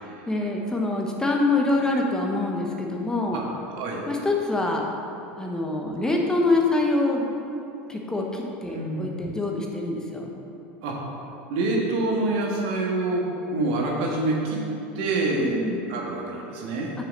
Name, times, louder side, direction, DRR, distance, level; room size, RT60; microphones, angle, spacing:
voice 1, 0.3-3.4 4.1-4.8 5.4-7.3 7.9-10.3 15.4-15.8, left 2 dB, 10° left, 0 dB, 1.0 m, -25 dB
voice 2, 8.7-9.1 10.8-11.0 11.5-13.2 13.5-14.6 14.9-15.6 15.9-16.9, right 2 dB, 70° right, -2 dB, 1.6 m, -26 dB
6.6 x 4.6 x 6.4 m, 2.8 s
hypercardioid pair, 100°, 6 cm